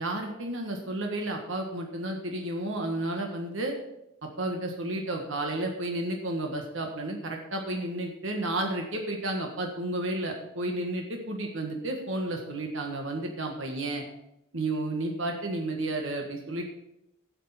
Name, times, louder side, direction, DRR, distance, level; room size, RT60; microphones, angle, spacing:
voice 1, 0.0-3.7 4.2-14.0 14.5-16.6, right 1 dB, 65° right, 2 dB, 1.6 m, -32 dB
8.3 x 6.7 x 8.2 m, 0.85 s
head